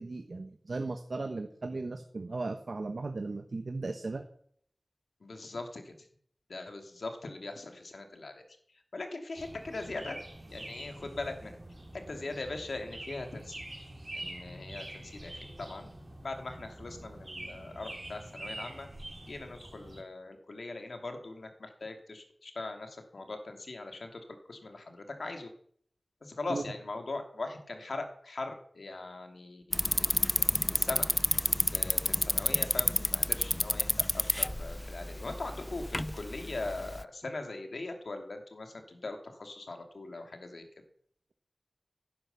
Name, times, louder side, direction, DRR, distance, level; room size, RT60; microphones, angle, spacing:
voice 1, 0.0-4.2 26.5-26.6, right 3 dB, 75° right, 7 dB, 1.2 m, -36 dB
voice 2, 5.2-6.0 6.5-8.4 8.9-10.2 10.5-11.6 12.1-13.6 14.1-15.9 16.2-18.9 19.2-24.2 24.5-25.5 26.2-31.0 31.7-40.6, left 2 dB, 85° left, 5 dB, 2.7 m, -41 dB
sound 1, 9.4-20.0, right 1 dB, 40° right, 3.7 m, -45 dB
Bicycle, 29.7-37.0, left 1 dB, 15° left, 0.6 m, -30 dB
16.5 x 10.0 x 6.9 m, 0.63 s
wide cardioid pair, 65°, 0 cm